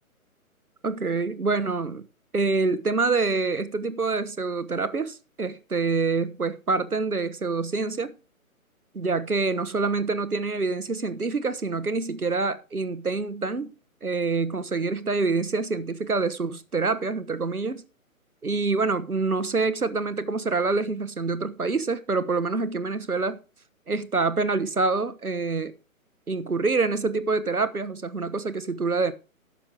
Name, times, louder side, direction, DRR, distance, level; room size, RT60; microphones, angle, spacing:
voice 1, 0.8-2.0 2.3-8.1 8.9-13.7 14.0-17.8 18.4-23.4 23.9-25.7 26.3-29.1, right 4 dB, 85° right, 1.3 m, -26 dB
11.5 x 7.4 x 5.1 m
figure-of-eight pair, 135°, 43 cm